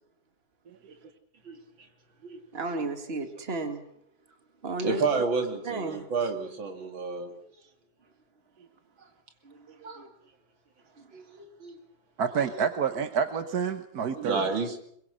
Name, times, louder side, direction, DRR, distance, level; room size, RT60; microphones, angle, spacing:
voice 1, 1.4-1.9 2.2-2.4 4.8-7.3 9.8-10.1 11.1-11.8 12.3-12.6 14.2-14.8, right 4 dB, 75° right, 5 dB, 3.2 m, -31 dB
voice 2, 2.5-3.8 4.6-5.0 5.6-6.1 9.4-10.1, right 3 dB, 30° right, 6 dB, 2.3 m, -33 dB
voice 3, 12.2-14.4, right 7 dB, 55° right, 8 dB, 1.5 m, -28 dB
24.0 x 22.0 x 6.3 m, 0.71 s
omnidirectional pair, 2.2 m